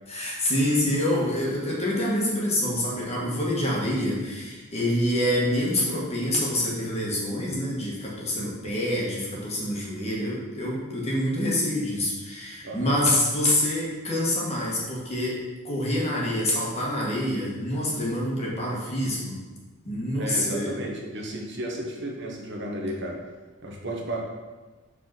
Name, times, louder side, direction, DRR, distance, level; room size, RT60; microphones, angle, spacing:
voice 1, 0.1-19.4 19.8-20.7, left 1 dB, 30° left, -4 dB, 1.6 m, -26 dB
voice 2, 12.6-13.0 20.1-23.2 23.6-24.2, right 1 dB, 55° right, 0 dB, 1.1 m, -33 dB
4.9 x 4.0 x 5.9 m, 1.3 s
head